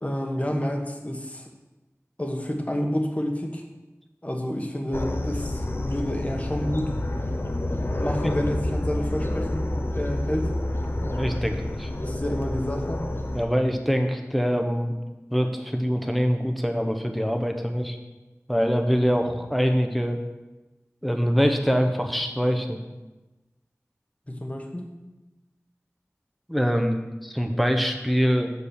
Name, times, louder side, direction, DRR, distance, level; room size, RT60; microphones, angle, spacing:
voice 1, 0.0-1.5 2.2-3.6 4.2-6.9 8.0-10.5 12.0-13.0 24.3-24.9, equal, 25° left, 2 dB, 1.3 m, -29 dB
sound 1, 4.9-13.4, left 1 dB, 50° left, 0.7 m, -28 dB
voice 2, 11.0-11.9 13.3-15.0 15.3-18.0 18.5-20.2 21.0-22.8 26.5-28.5, equal, ahead, 4 dB, 1.0 m, -24 dB
6.9 x 4.9 x 7.1 m, 1.1 s
wide cardioid pair, 50°, 5 cm